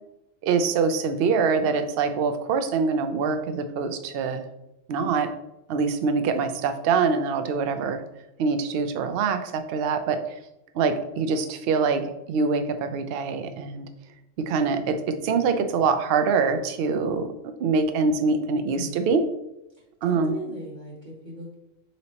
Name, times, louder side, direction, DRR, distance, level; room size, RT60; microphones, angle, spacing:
voice 1, 0.4-4.4 4.9-5.3 5.7-8.0 8.4-10.2 10.7-13.9 14.5-17.3 17.6-19.2 20.0-20.3, right 5 dB, 65° right, 8 dB, 0.6 m, -24 dB
voice 2, 20.0-21.5, equal, 35° right, -3 dB, 1.0 m, -38 dB
4.3 x 4.1 x 2.8 m, 0.87 s
omnidirectional pair, 1.4 m